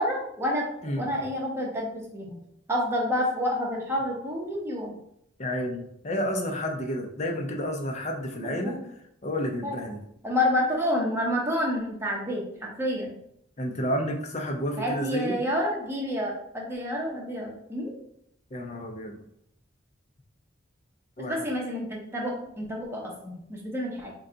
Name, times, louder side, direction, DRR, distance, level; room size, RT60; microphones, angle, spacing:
voice 1, 0.0-0.7 1.0-2.4 2.7-5.0 8.4-8.9 9.6-9.8 10.2-13.1 14.8-17.9 21.2-24.1, left 1 dB, 10° right, -2 dB, 0.8 m, -29 dB
voice 2, 5.4-8.8 9.2-10.0 13.6-15.4 18.5-19.2 21.2-21.5, equal, 35° left, 2 dB, 0.6 m, -30 dB
3.8 x 2.2 x 3.8 m, 0.74 s
head